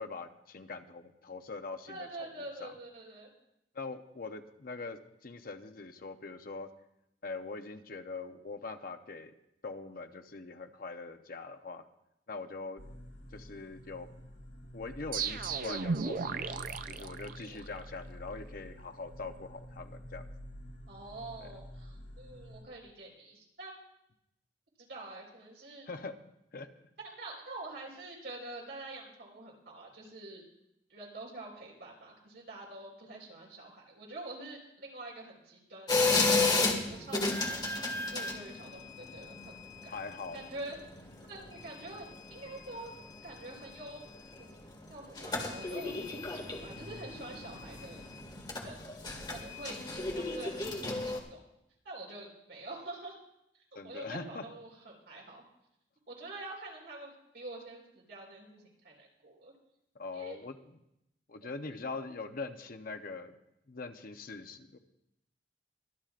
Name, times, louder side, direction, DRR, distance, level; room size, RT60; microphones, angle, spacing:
voice 1, 0.0-2.7 3.7-6.7 7.2-9.3 9.6-11.8 12.3-12.8 13.3-14.1 14.7-20.3 21.4-21.5 25.9-26.2 26.5-26.7 39.9-40.4 53.7-54.4 59.9-60.8 61.3-63.3 63.7-64.8, left 3 dB, 55° left, 7 dB, 0.8 m, -42 dB
voice 2, 1.9-3.3 17.3-17.7 20.9-23.8 24.9-25.9 27.0-30.4 30.9-39.9 40.3-41.0 41.3-42.9 43.2-44.0 44.4-48.0 48.6-48.9 49.3-51.4 51.8-53.2 53.5-55.4 56.1-59.5 60.1-60.4 61.8-62.0, right 2 dB, 70° right, -2 dB, 4.5 m, -46 dB
sound 1, 12.8-22.6, equal, 85° left, 2.0 m, -49 dB
sound 2, 15.1-17.9, right 5 dB, 50° right, 0.5 m, -35 dB
sound 3, 35.9-51.2, left 3 dB, 25° left, 1.8 m, -33 dB
24.0 x 10.5 x 2.5 m, 0.82 s
head